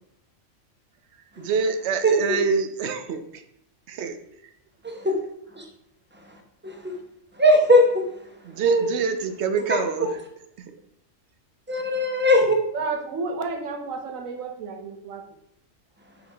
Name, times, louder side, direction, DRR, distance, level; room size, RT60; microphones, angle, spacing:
voice 1, 1.4-3.4 3.9-4.2 8.4-10.1 10.7-10.8, right 5 dB, 65° right, 9 dB, 0.8 m, -26 dB
voice 2, 2.0-2.4 4.8-5.2 5.6-5.7 6.6-6.9 7.4-8.0 8.6-8.9 9.7-9.8 11.7-12.6, equal, 10° right, 2 dB, 0.7 m, -19 dB
voice 3, 12.7-15.3, right 4 dB, 85° right, 5 dB, 1.2 m, -32 dB
5.8 x 5.5 x 3.4 m, 0.76 s
omnidirectional pair, 1.4 m